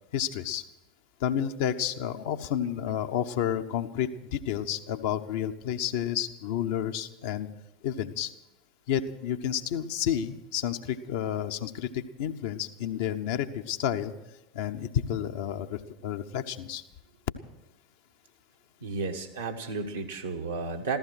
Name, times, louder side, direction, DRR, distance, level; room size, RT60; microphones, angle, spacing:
voice 1, 0.1-0.6 1.2-7.5 7.8-8.3 8.9-14.1 14.5-16.8, left 9 dB, 55° left, 6 dB, 0.8 m, -30 dB
voice 2, 18.8-21.0, right 4 dB, 75° right, 0 dB, 1.2 m, -33 dB
15.0 x 14.5 x 6.2 m, 0.94 s
figure-of-eight pair, 80°, 0 cm